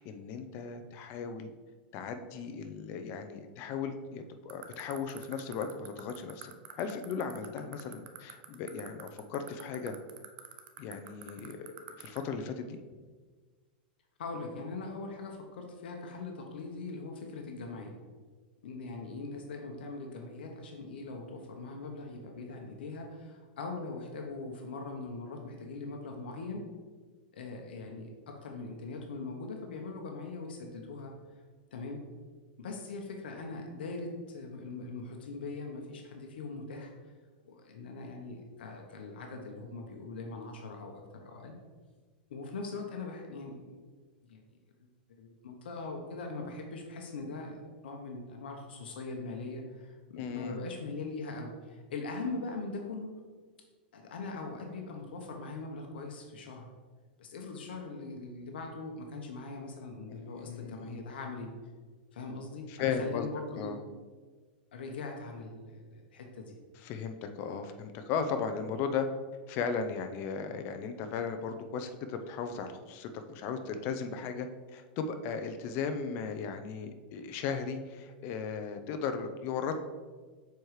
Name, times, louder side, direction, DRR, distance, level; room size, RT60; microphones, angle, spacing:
voice 1, 0.0-1.5 1.9-6.5 6.8-9.9 10.8-11.7 12.0-12.8 50.2-50.6 60.1-61.0 62.7-63.3 63.5-63.8 66.8-69.1 69.5-79.7, left 6 dB, 45° left, 7 dB, 0.6 m, -36 dB
sound 1, 4.5-12.2, right 15 dB, 65° right, 0.6 m, -44 dB
voice 2, 14.2-17.9 18.6-26.7 27.3-31.1 31.7-32.1 32.6-36.9 37.4-41.5 42.3-43.8 44.3-44.4 45.2-53.1 53.9-56.7 57.2-61.5 62.1-63.7 64.7-66.6, left 3 dB, 85° left, 2 dB, 1.0 m, -41 dB
6.9 x 4.6 x 3.2 m, 1.4 s
hypercardioid pair, 130°, 5 cm